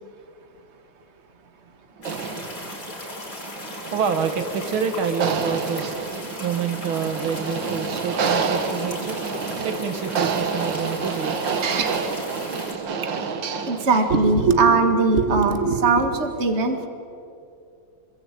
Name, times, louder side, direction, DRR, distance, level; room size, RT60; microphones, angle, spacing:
sound 1, 2.0-12.7, left 2 dB, 50° left, 7.1 m, -37 dB
sound 2, 2.0-14.3, right 5 dB, 65° right, 2.2 m, -29 dB
voice 1, 3.9-5.9 6.4-9.2 9.6-11.4, right 6 dB, 85° right, 9 dB, 2.3 m, -27 dB
voice 2, 13.7-16.9, right 4 dB, 35° right, 6 dB, 2.0 m, -19 dB
26.0 x 22.0 x 9.2 m, 2.6 s
omnidirectional pair, 2.2 m